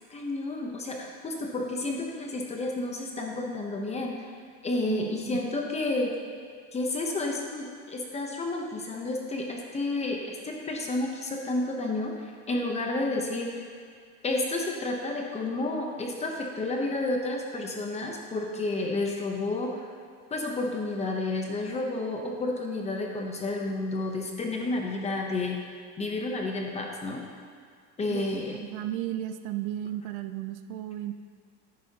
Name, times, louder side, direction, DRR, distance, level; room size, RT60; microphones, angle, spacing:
voice 1, 0.1-4.3 4.6-6.1 6.7-12.1 12.5-13.6 14.2-19.9 20.3-25.6 26.0-27.2 28.0-28.6, left 2 dB, 15° left, 1 dB, 0.7 m, -31 dB
voice 2, 4.9-5.4 28.1-31.1, right 12 dB, 80° right, 10 dB, 0.6 m, -34 dB
10.0 x 9.6 x 2.8 m, 2.2 s
cardioid pair, 160°, 41 cm